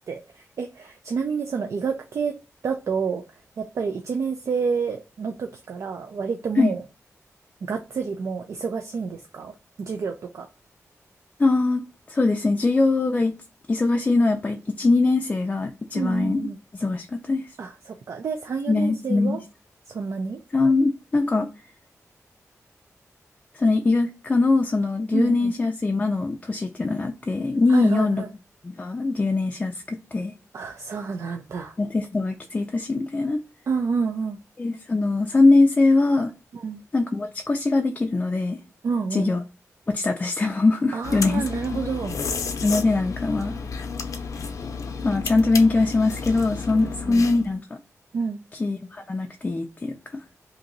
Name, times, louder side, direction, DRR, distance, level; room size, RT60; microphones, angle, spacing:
voice 1, 0.1-2.3 2.6-6.8 7.6-9.5 9.8-10.5 15.9-16.6 17.6-19.4 19.9-20.4 25.1-25.5 27.7-28.3 30.5-31.8 33.7-34.4 36.5-36.8 38.8-39.3 40.9-42.2 46.8-47.3 48.1-48.4, right 5 dB, 65° right, 0.4 m, -29 dB
voice 2, 11.4-13.4 13.7-17.5 18.7-19.4 20.5-21.5 23.5-28.2 28.6-30.3 31.8-33.4 34.6-36.3 36.9-38.6 39.1-39.4 39.9-41.8 42.6-43.6 45.0-47.8 48.6-50.0, left 3 dB, 25° left, 0.3 m, -22 dB
sound 1, 41.0-47.5, left 5 dB, 80° left, 0.5 m, -32 dB
2.9 x 2.5 x 3.8 m
wide cardioid pair, 170°, 5 cm